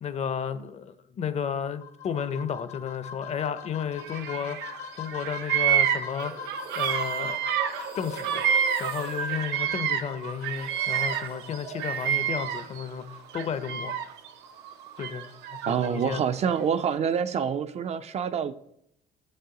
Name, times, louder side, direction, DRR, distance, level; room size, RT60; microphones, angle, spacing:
voice 1, 0.0-4.6 5.0-6.3 6.8-7.4 8.0-8.5 8.8-14.1 15.0-16.2, left 7 dB, 40° left, 13 dB, 0.5 m, -33 dB
sound 1, 1.6-12.6, left 7 dB, 75° left, 1.0 m, -43 dB
Bird vocalization bird call bird song, 4.0-4.8 5.1-10.2 10.4-12.8 13.3-14.3 15.0-16.1, right 9 dB, 85° right, 0.6 m, -28 dB
sound 2, 6.2-13.6 13.8-15.4, right 7 dB, 65° right, 0.9 m, -44 dB
voice 2, 15.7-18.5, right 7 dB, 40° right, 11 dB, 0.4 m, -27 dB
6.8 x 5.5 x 3.8 m, 0.75 s
cardioid pair, 110°, 17 cm